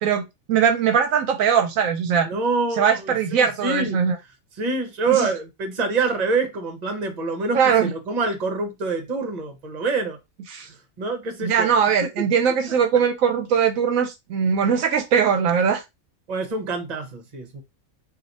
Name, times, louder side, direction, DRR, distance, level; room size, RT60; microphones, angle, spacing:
voice 1, 0.0-2.3 2.8-4.2 5.1-5.3 7.5-7.9 10.5-10.7 11.4-15.8, right 7 dB, 75° right, 1.0 m, -20 dB
voice 2, 2.3-4.0 4.6-10.2 11.0-11.7 16.3-17.6, right 4 dB, 35° right, 0.9 m, -26 dB
3.1 x 2.6 x 4.0 m
omnidirectional pair, 1.5 m